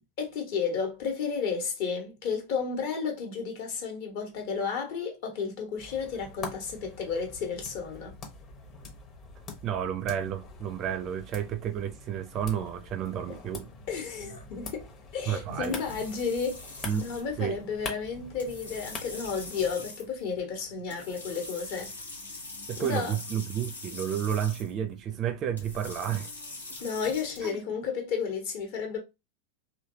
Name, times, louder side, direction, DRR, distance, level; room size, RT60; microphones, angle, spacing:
voice 1, 0.2-8.1 13.9-14.8 15.1-16.6 17.0-21.9 22.8-23.1 26.8-29.0, left 5 dB, 50° left, 1.3 m, -32 dB
sound 1, 5.8-19.7, left 4 dB, 30° left, 1.0 m, -45 dB
voice 2, 9.6-13.7 15.3-15.8 16.8-17.1 17.4-17.6 22.7-26.3 27.4-27.6, right 9 dB, 35° right, 0.4 m, -31 dB
sound 2, 12.7-27.5, left 2 dB, 75° left, 1.2 m, -44 dB
3.2 x 3.0 x 2.7 m
figure-of-eight pair, 90°, 0 cm